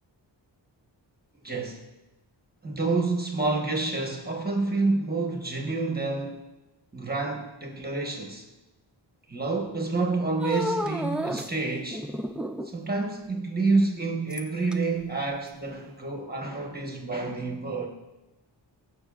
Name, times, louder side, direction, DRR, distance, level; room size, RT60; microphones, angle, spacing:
voice 1, 1.4-1.8 2.6-6.5 6.9-8.5 9.3-12.1 12.6-17.9, right 3 dB, 20° right, 1 dB, 1.2 m, -28 dB
sound 1, 10.4-11.5 11.9-12.8 14.3-14.7 15.5-15.6, equal, 5° right, 0.3 m, -31 dB
18.0 x 6.4 x 2.4 m, 1.0 s
wide cardioid pair, 120°, 45 cm